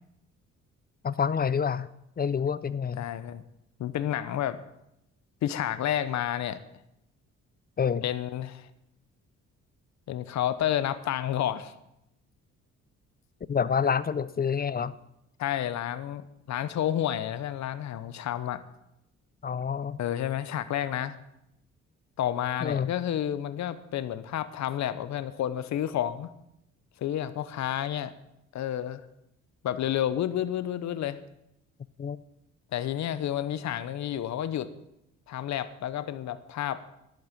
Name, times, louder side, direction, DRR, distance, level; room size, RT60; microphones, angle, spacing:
voice 1, 1.0-1.9 2.2-3.0 7.8-8.0 13.5-14.9 19.4-20.0 22.6-22.9 32.0-32.2, left 7 dB, 30° left, 17 dB, 0.6 m, -27 dB
voice 2, 3.0-3.4 3.8-4.6 5.4-6.6 8.0-8.7 10.1-11.7 13.8-13.9 15.4-18.6 20.0-21.2 22.2-26.3 27.0-28.1 28.5-29.0 29.6-31.2 32.7-34.7 35.3-36.8, left 11 dB, 65° left, 14 dB, 0.9 m, -30 dB
11.0 x 9.0 x 7.4 m, 0.84 s
cardioid pair, 90°, 30 cm